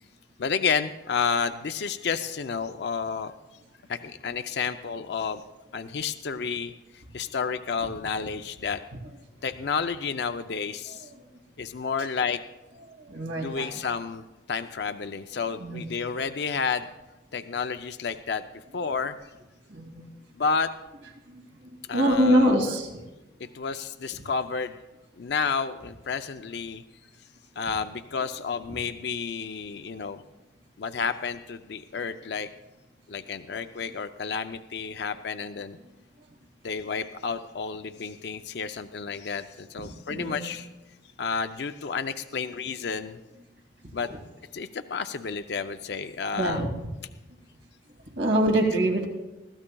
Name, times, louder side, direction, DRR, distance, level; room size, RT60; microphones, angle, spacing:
voice 1, 0.4-3.3 3.9-5.4 5.7-8.8 9.4-11.1 11.6-12.4 13.4-14.2 14.5-16.9 17.3-18.4 18.7-19.2 20.4-20.7 21.9-22.7 23.5-24.8 25.2-26.8 27.6-30.2 30.8-32.5 33.1-35.8 36.6-40.7 41.2-43.2 43.9-44.1 44.5-46.6, left 5 dB, 60° left, 9 dB, 0.5 m, -31 dB
voice 2, 12.9-13.7 15.6-15.9 19.7-20.1 21.3-22.9 40.1-40.6 44.0-44.2 46.3-46.7 48.2-49.1, equal, 75° right, 1 dB, 2.4 m, -25 dB
21.5 x 16.0 x 2.3 m, 1.0 s
head